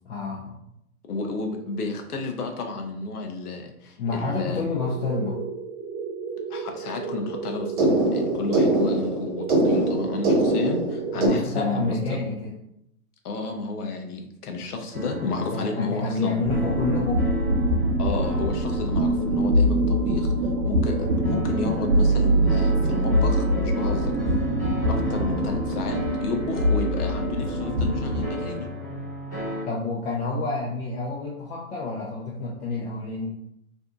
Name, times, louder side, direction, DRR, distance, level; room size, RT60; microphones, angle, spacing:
voice 1, 0.0-0.6 4.0-5.4 11.1-12.5 15.5-17.3 29.7-33.3, left 3 dB, 50° left, -5 dB, 0.7 m, -29 dB
voice 2, 1.1-4.6 6.5-12.2 13.2-16.4 18.0-24.6 24.9-28.7, left 3 dB, 85° left, 4 dB, 0.7 m, -32 dB
sound 1, 4.8-11.3, right 2 dB, 65° right, 1.1 m, -25 dB
sound 2, 14.9-29.6, left 1 dB, 15° left, 0.3 m, -35 dB
sound 3, 16.4-28.4, right 1 dB, 85° right, 0.6 m, -23 dB
2.6 x 2.5 x 2.3 m, 0.77 s
hypercardioid pair, 125°, 45 cm